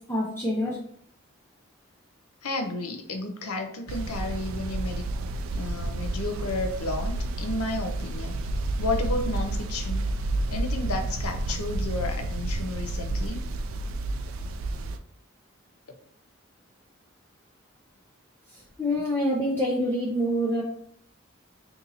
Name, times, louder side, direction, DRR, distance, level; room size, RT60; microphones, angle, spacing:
voice 1, 0.1-0.8 18.8-20.6, equal, 10° left, -5 dB, 0.4 m, -26 dB
voice 2, 2.4-5.0 5.5-8.3 8.8-10.1 10.5-13.4, left 2 dB, 90° left, 5 dB, 0.6 m, -32 dB
sound 1, 3.9-15.0, right 2 dB, 70° right, 0.3 m, -30 dB
2.8 x 2.6 x 3.9 m, 0.63 s
head